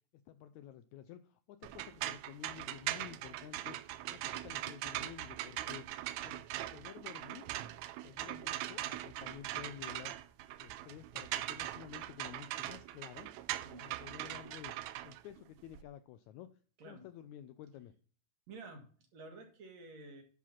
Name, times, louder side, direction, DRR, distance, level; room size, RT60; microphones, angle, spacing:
voice 1, 0.3-3.8 4.1-6.4 6.7-7.4 8.0-10.3 10.6-13.3 13.8-14.7 15.0-16.5 16.8-17.9, left 11 dB, 80° left, 11 dB, 1.7 m, -51 dB
sound 1, 1.6-15.8, right 14 dB, 90° right, 1.6 m, -41 dB
voice 2, 18.5-20.2, right 3 dB, 60° right, 3 dB, 3.0 m, -51 dB
11.0 x 4.9 x 5.8 m, 0.43 s
omnidirectional pair, 3.8 m